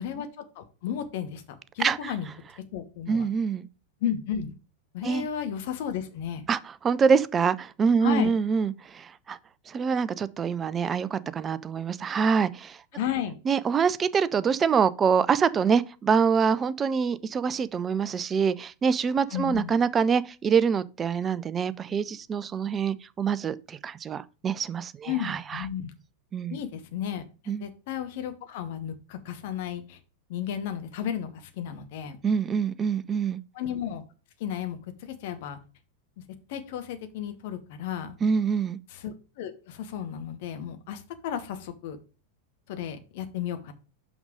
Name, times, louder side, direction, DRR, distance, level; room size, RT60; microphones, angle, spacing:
voice 1, 0.0-1.4 1.7-2.3 2.7-3.3 4.0-4.5 4.9-6.5 8.0-8.3 12.9-13.3 19.3-19.7 25.1-25.9 26.5-30.0 30.3-32.2 33.5-34.0 34.4-35.6 36.5-38.1 38.9-42.0 42.7-43.7, left 9 dB, 50° left, 1.1 m, -33 dB
voice 2, 1.8-2.1 3.1-3.7 5.0-5.3 6.5-9.4 9.7-12.8 13.5-25.6 26.3-26.6 27.5-27.6 32.2-33.4 38.2-38.8, right 6 dB, 20° right, 0.4 m, -25 dB
5.9 x 5.4 x 5.1 m
figure-of-eight pair, 90°, 0 cm